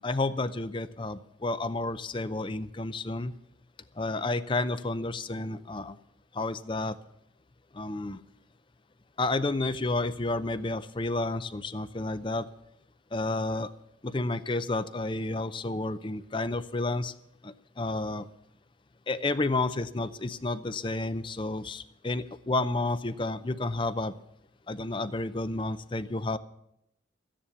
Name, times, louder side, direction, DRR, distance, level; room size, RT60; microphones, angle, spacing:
voice 1, 0.0-3.3 4.0-6.0 6.3-7.0 7.7-8.2 9.2-12.5 13.1-13.7 14.0-17.1 17.4-18.3 19.1-24.1 24.7-26.4, left 2 dB, 25° left, 13 dB, 0.5 m, -31 dB
14.0 x 10.0 x 8.3 m, 0.80 s
head